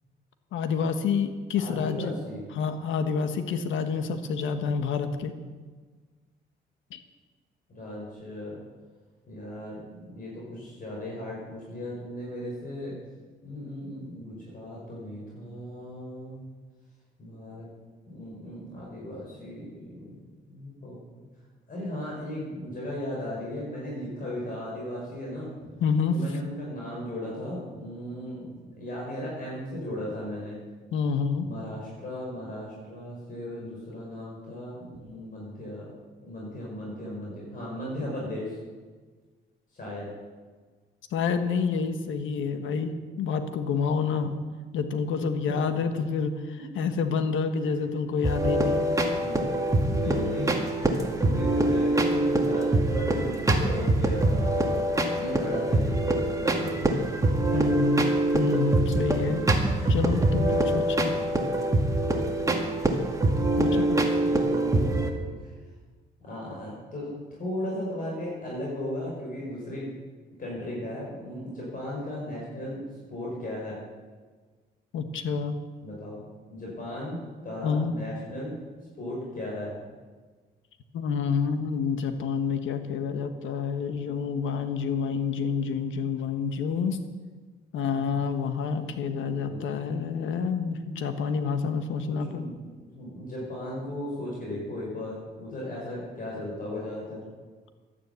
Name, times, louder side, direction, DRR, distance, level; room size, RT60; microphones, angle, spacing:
voice 1, 0.5-2.1 2.5-5.3 6.9-7.0 25.8-26.2 30.9-31.5 41.1-44.4 44.7-48.9 49.9-50.5 56.8-56.9 57.5-59.4 59.9-61.1 63.6-64.1 74.9-75.6 77.6-77.9 80.9-87.0 87.7-92.4, left 5 dB, 80° left, 8 dB, 1.3 m, -28 dB
voice 2, 1.6-2.4 7.7-8.6 9.3-13.0 13.4-16.5 17.2-17.7 18.1-20.2 20.5-21.0 21.7-25.8 26.1-30.6 31.4-35.9 36.2-38.6 39.7-40.1 44.2-44.3 45.1-45.8 46.7-46.8 48.9-50.7 51.0-54.4 55.2-56.0 56.3-57.0 57.5-58.0 59.2-59.7 61.1-61.5 62.4-62.8 63.6-65.1 65.4-65.5 66.2-69.9 70.4-73.8 75.8-76.2 76.5-78.6 79.0-79.7 89.5-90.2 92.0-97.2, left 1 dB, 45° left, -5 dB, 5.4 m, -37 dB
sound 1, 48.2-65.1, right 1 dB, 15° right, 2.0 m, -24 dB
12.0 x 10.0 x 8.2 m, 1.4 s
cardioid pair, 90°, 20 cm